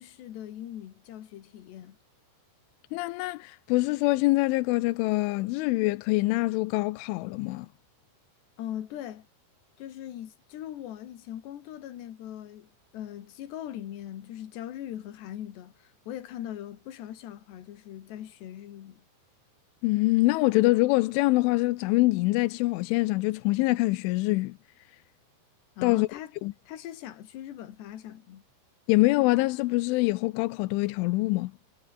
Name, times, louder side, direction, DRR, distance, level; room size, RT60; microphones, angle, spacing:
voice 1, 0.0-2.0 8.6-9.3 9.8-19.1 25.8-26.3 26.7-28.4, left 11 dB, 65° left, 4.1 m, -40 dB
voice 2, 2.9-7.7 19.8-24.6 25.8-26.1 26.4-26.5 28.9-31.5, left 21 dB, 90° left, 3.2 m, -24 dB
omnidirectional pair, 5.5 m